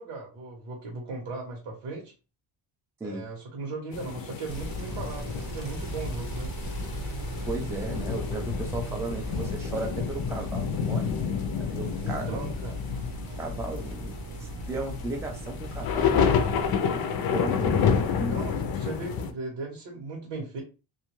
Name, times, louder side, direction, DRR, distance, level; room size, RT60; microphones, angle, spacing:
voice 1, 0.0-2.1 3.0-6.5 12.0-12.8 18.3-20.6, right 3 dB, 80° right, -2 dB, 1.2 m, -37 dB
sound 1, 3.9-19.3, left 7 dB, 50° left, 0.5 m, -29 dB
sound 2, 4.5-16.8, equal, 55° right, 0.8 m, -36 dB
voice 2, 7.5-11.1 11.6-12.5 13.4-14.1 14.4-16.3 16.8-18.4, right 2 dB, 5° right, 2 dB, 0.4 m, -35 dB
2.5 x 2.3 x 3.0 m, 0.32 s
cardioid pair, 135°, 48 cm